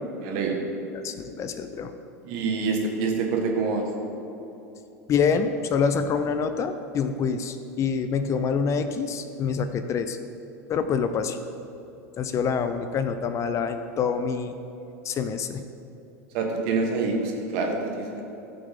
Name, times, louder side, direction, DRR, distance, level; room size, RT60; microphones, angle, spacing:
voice 1, 0.2-0.6 2.2-3.9 16.3-18.2, right 4 dB, 60° right, 2 dB, 1.6 m, -26 dB
voice 2, 0.9-1.9 5.1-10.2 10.7-11.4 12.2-14.5 15.0-15.6, left 6 dB, 35° left, 9 dB, 0.6 m, -26 dB
14.5 x 5.9 x 3.8 m, 3.0 s
hypercardioid pair, 85°, 8 cm